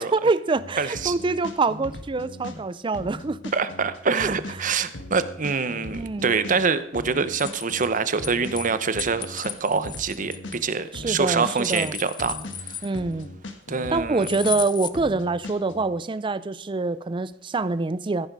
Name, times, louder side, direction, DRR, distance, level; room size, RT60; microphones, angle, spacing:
voice 1, 0.0-3.5 4.2-4.3 4.6-4.7 5.9-6.3 10.9-12.0 12.8-13.3 13.9-18.3, right 3 dB, 25° right, 0.4 m, -25 dB
sound 1, 0.6-2.6 2.9-6.6 6.9-10.6 10.9-14.6 14.9-15.8, left 2 dB, 80° left, 1.7 m, -39 dB
voice 2, 0.8-1.1 3.5-12.3 13.7-14.3, right 5 dB, 45° right, 0.8 m, -25 dB
sound 2, 7.3-8.7 9.0-10.9 11.4-13.2 14.2-14.9, left 8 dB, 25° left, 0.5 m, -35 dB
14.5 x 10.5 x 4.7 m
head